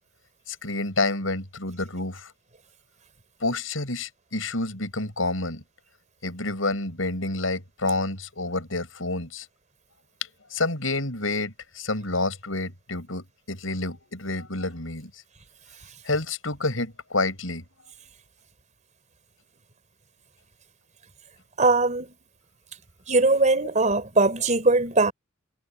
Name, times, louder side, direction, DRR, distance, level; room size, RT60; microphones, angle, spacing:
voice 1, 0.5-2.3 3.4-5.6 6.2-9.5 10.5-15.1 16.0-17.6, left 2 dB, 85° left, 7.9 m, -29 dB
voice 2, 21.6-22.1 23.1-25.1, right 3 dB, 40° right, 4.4 m, -20 dB
head